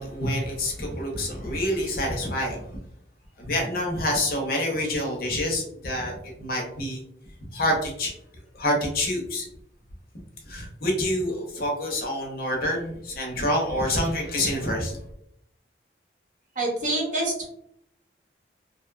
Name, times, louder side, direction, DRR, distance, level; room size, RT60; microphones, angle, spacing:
voice 1, 0.0-2.7 3.4-7.0 7.5-8.1 8.5-9.5 10.5-15.0, left 1 dB, 55° left, 0 dB, 0.7 m, -27 dB
voice 2, 16.6-17.5, right 2 dB, 45° right, -3 dB, 0.8 m, -26 dB
2.6 x 2.1 x 2.4 m, 0.73 s
head